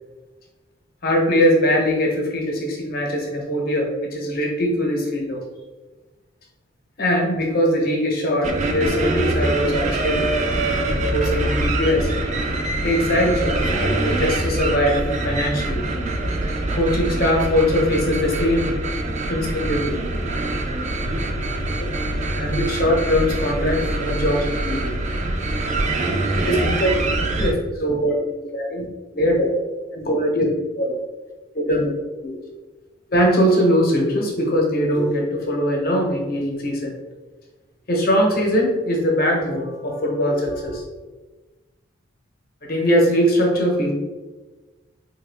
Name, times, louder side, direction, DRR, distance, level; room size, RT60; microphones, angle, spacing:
voice 1, 1.0-5.4 7.0-10.3 11.1-12.1 12.8-15.8 16.7-18.7 19.3-19.9 21.8-21.9 22.4-24.9 26.5-28.9 29.1-29.5 29.9-30.5 30.7-30.9 31.5-31.9 32.2-32.3 33.1-36.9 37.9-40.8 42.6-43.9, equal, 50° left, 0 dB, 0.8 m, -21 dB
sound 1, 8.4-27.5, right 2 dB, 40° right, 0.4 m, -24 dB
3.5 x 2.2 x 3.3 m, 1.2 s
head